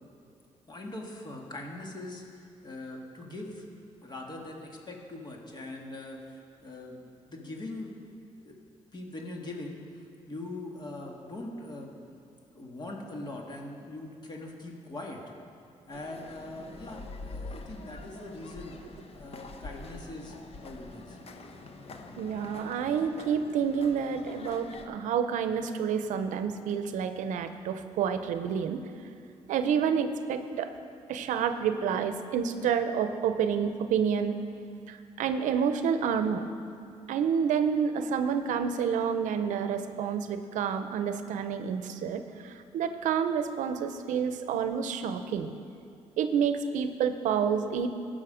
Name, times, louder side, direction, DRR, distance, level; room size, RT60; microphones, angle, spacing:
voice 1, 0.7-3.6 4.0-7.9 8.4-8.6 8.9-9.8 10.3-11.9 12.5-15.2 15.9-18.8 19.2-21.2 24.7-24.8, left 2 dB, 35° left, 0 dB, 1.8 m, -42 dB
sound 1, 15.9-24.9, left 3 dB, 50° left, 0.9 m, -45 dB
voice 2, 22.2-28.8 29.5-30.7 31.1-34.4 34.9-36.5 37.1-45.5 46.2-47.9, right 7 dB, 90° right, 9 dB, 0.7 m, -29 dB
17.0 x 6.3 x 5.0 m, 2.4 s
cardioid pair, 100°, 13 cm